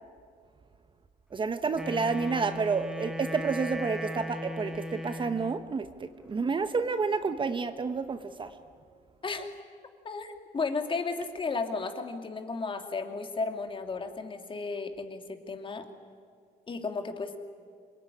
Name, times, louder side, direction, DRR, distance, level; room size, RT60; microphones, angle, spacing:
voice 1, 1.3-8.6, right 4 dB, 30° right, 10 dB, 1.1 m, -30 dB
Wind instrument woodwind instrument, 1.7-5.7, equal, 5° right, 1.6 m, -37 dB
voice 2, 10.0-15.9 16.7-17.4, left 4 dB, 30° left, 6 dB, 2.4 m, -34 dB
27.0 x 20.5 x 10.0 m, 2.1 s
cardioid pair, 110°, 17 cm